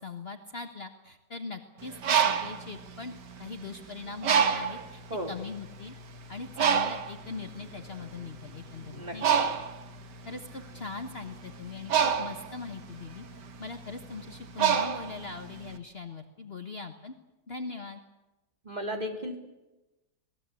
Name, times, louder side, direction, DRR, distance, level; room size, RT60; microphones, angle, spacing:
voice 1, 0.0-3.1 3.4-5.0 5.3-5.9 6.3-9.3 10.2-13.2 13.6-17.1 17.5-18.0, left 4 dB, 40° left, 6 dB, 1.5 m, -41 dB
Bird, 1.8-3.7 4.2-4.9 5.6-5.7 6.0-15.7, right 7 dB, 90° right, 2.0 m, -28 dB
voice 2, 8.8-9.4 18.6-19.4, equal, 25° right, 3 dB, 3.2 m, -35 dB
26.0 x 19.5 x 8.4 m, 1.0 s
omnidirectional pair, 1.8 m